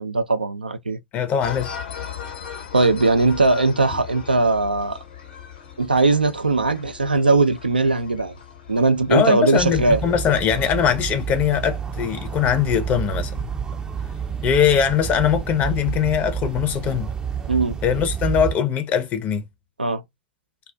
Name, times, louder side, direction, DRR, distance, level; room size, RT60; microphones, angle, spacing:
voice 1, 0.0-1.0 2.7-5.0 5.8-8.3 8.7-10.0 17.5-17.8 19.8-20.0, right 3 dB, 85° right, 0.4 m, -19 dB
voice 2, 1.1-1.7 9.1-13.5 14.4-17.1 17.8-19.4, left 8 dB, 35° left, 0.6 m, -21 dB
sound 1, 1.4-9.3, left 8 dB, 70° left, 1.1 m, -38 dB
sound 2, 9.6-18.6, right 7 dB, 15° right, 0.4 m, -29 dB
2.4 x 2.3 x 2.2 m
figure-of-eight pair, 85°, 5 cm